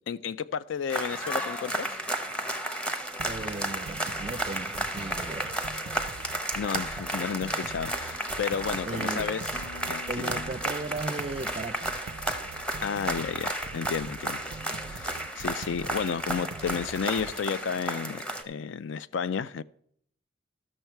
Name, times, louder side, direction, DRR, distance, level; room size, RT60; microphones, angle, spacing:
voice 1, 0.1-2.0 6.5-9.4 9.9-10.4 12.8-14.6 14.9-19.6, left 6 dB, 70° left, 0.4 m, -32 dB
sound 1, 0.9-18.4, right 1 dB, 5° left, 0.8 m, -33 dB
sound 2, 3.2-17.3, right 5 dB, 90° right, 0.4 m, -44 dB
voice 2, 3.3-5.6 8.8-9.5 10.1-12.0, right 2 dB, 30° right, 0.5 m, -36 dB
sound 3, 3.5-11.3, left 2 dB, 30° left, 1.0 m, -52 dB
14.0 x 6.4 x 4.5 m
head